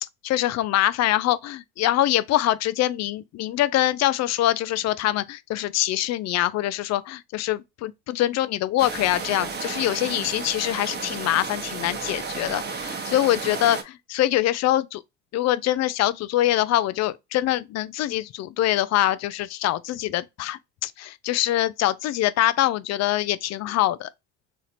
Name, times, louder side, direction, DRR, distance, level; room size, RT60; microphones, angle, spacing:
voice 1, 0.2-15.0 15.3-24.1, left 14 dB, 50° left, 0.4 m, -24 dB
sound 1, 8.8-13.8, right 5 dB, 30° right, 0.9 m, -33 dB
4.2 x 2.9 x 2.5 m
supercardioid pair, 80°, 36 cm